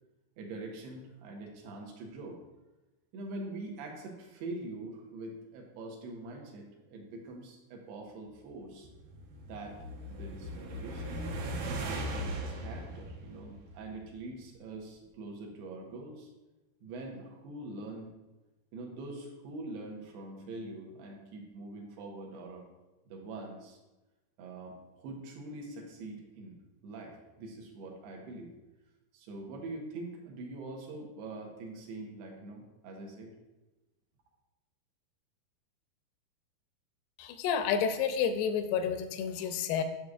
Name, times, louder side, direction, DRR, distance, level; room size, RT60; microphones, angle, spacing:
voice 1, 0.4-2.4 3.1-8.9 9.5-9.8 10.1-11.2 11.8-16.3 16.8-18.1 18.7-22.6 23.1-23.8 24.4-26.6 26.8-28.5 29.1-33.3, right 2 dB, 90° right, 1 dB, 3.1 m, -44 dB
sound 1, 8.7-14.2, right 1 dB, 70° right, 2.0 m, -39 dB
voice 2, 37.2-39.8, left 7 dB, 85° left, 8 dB, 2.5 m, -30 dB
9.0 x 6.4 x 2.4 m, 1.1 s
omnidirectional pair, 4.5 m